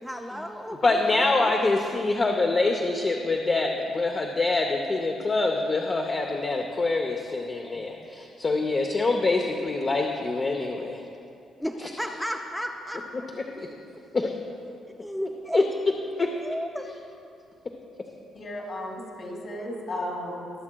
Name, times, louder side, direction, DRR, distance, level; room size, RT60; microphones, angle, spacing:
voice 1, 0.0-1.5 11.6-13.3 15.0-15.7 16.2-16.9, equal, ahead, 2 dB, 0.5 m, -34 dB
voice 2, 0.8-11.0 13.6-13.7 14.1-14.3 15.5-15.6 16.2-16.3, left 3 dB, 35° left, 2 dB, 0.7 m, -25 dB
voice 3, 18.3-20.6, left 1 dB, 50° left, -1 dB, 2.5 m, -35 dB
21.0 x 7.2 x 2.3 m, 2.6 s
cardioid pair, 90°, 0 cm